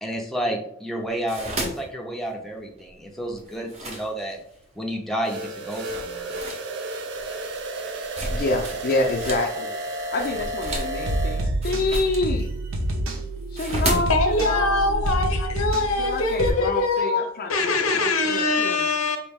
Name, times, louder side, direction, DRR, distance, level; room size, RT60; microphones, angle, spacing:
voice 1, 0.0-4.4 4.8-6.4, right 1 dB, ahead, 0 dB, 0.6 m, -31 dB
sound 1, 1.0-4.6 5.2-5.3 5.7-9.5 9.8-16.5, right 1 dB, 30° right, 0.9 m, -33 dB
sound 2, 5.2-11.5, right 1 dB, 55° right, 0.5 m, -32 dB
voice 2, 8.3-12.5 13.5-15.0 16.0-18.9, left 2 dB, 45° left, 0 dB, 0.4 m, -27 dB
sound 3, 10.6-16.5, right 1 dB, 75° right, 0.9 m, -28 dB
voice 3, 14.1-19.2, left 3 dB, 90° left, 5 dB, 0.8 m, -23 dB
4.5 x 3.0 x 3.5 m, 0.70 s
head